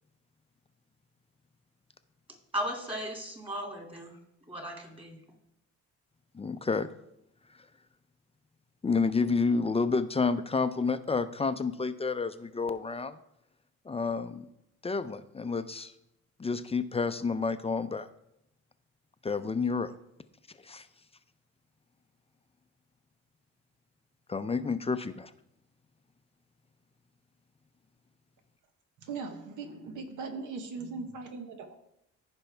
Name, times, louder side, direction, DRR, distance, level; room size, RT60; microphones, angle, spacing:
voice 1, 2.5-4.2 4.5-5.2, equal, 20° right, 1 dB, 2.5 m, -36 dB
voice 2, 6.3-6.9 8.8-13.2 13.9-14.5 14.8-15.9 16.4-18.1 19.2-19.9 20.6-20.9 24.3-25.3, left 4 dB, 20° left, 11 dB, 0.5 m, -29 dB
voice 3, 29.0-31.8, right 4 dB, 85° right, 7 dB, 1.2 m, -39 dB
14.5 x 5.2 x 3.4 m, 0.80 s
cardioid pair, 90°, 30 cm